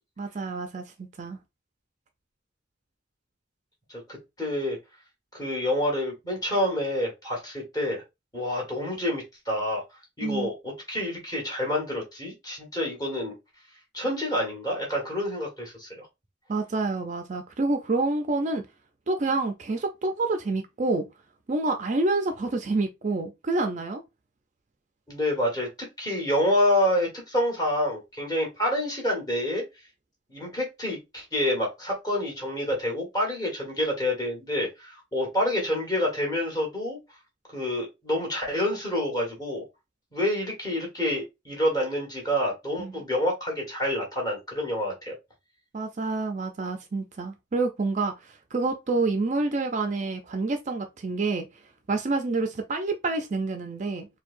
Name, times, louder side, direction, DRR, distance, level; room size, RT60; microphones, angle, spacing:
voice 1, 0.2-1.4 10.2-10.5 16.5-18.6 19.1-21.1 21.5-24.0 42.8-42.9 45.7-48.1 48.5-51.5 51.9-54.1, right 3 dB, 40° right, 0.5 m, -28 dB
voice 2, 4.1-4.8 5.3-8.0 8.3-9.8 10.2-13.3 13.9-16.1 25.1-29.6 30.3-37.0 37.5-39.6 40.1-45.2, left 1 dB, 20° left, 1.6 m, -28 dB
4.5 x 2.2 x 2.5 m
head